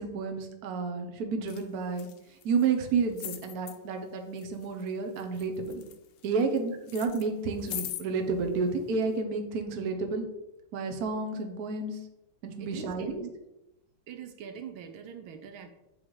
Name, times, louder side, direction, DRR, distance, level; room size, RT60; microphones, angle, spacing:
voice 1, 0.0-2.1 2.4-5.8 6.2-10.3 10.7-12.0 12.4-13.2, right 4 dB, 55° right, 4 dB, 1.2 m, -30 dB
sound 1, 1.5-1.6 1.9-2.7 3.2-3.8 4.4-4.9 5.2-6.6 6.9-8.0 8.8-8.9, left 12 dB, 80° left, 1.4 m, -40 dB
voice 2, 12.6-13.3 14.1-15.7, right 7 dB, 80° right, 6 dB, 1.5 m, -42 dB
8.6 x 3.5 x 4.8 m, 0.92 s
omnidirectional pair, 2.2 m